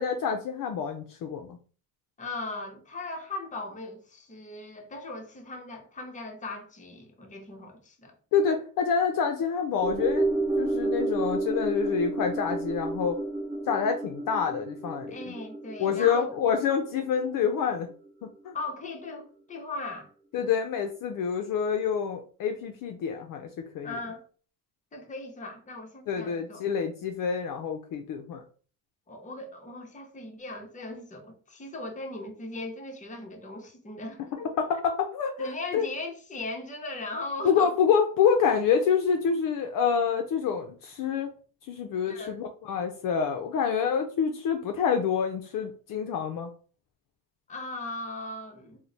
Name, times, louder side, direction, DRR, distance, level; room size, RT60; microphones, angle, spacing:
voice 1, 0.0-1.6 8.3-10.3 10.6-13.2 13.7-15.3 15.8-17.9 18.2-18.5 20.3-23.5 23.7-24.0 26.1-28.4 34.6-35.9 37.4-41.3 41.7-46.5, left 6 dB, 55° left, 0.5 m, -27 dB
voice 2, 2.2-8.2 15.1-16.3 18.5-20.1 23.8-24.3 24.9-26.7 29.1-34.5 35.4-37.7 42.1-42.4 47.5-48.8, left 2 dB, 20° left, 0.8 m, -38 dB
sound 1, 9.8-18.3 18.6-18.7, right 2 dB, 15° right, 0.8 m, -31 dB
3.0 x 2.1 x 3.9 m
cardioid pair, 110°, 41 cm